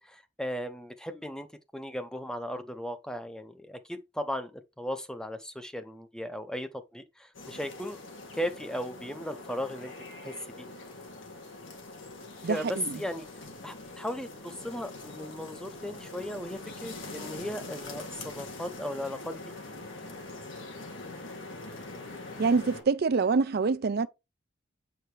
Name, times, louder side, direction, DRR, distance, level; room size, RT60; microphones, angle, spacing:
voice 1, 0.0-1.5 1.7-8.0 8.3-10.7 12.4-19.5, equal, 5° left, 0.6 m, -37 dB
sound 1, 7.3-22.8, left 2 dB, 90° left, 2.1 m, -43 dB
voice 2, 12.4-13.0 22.4-24.1, right 4 dB, 55° right, 0.4 m, -26 dB
7.8 x 4.7 x 3.2 m
head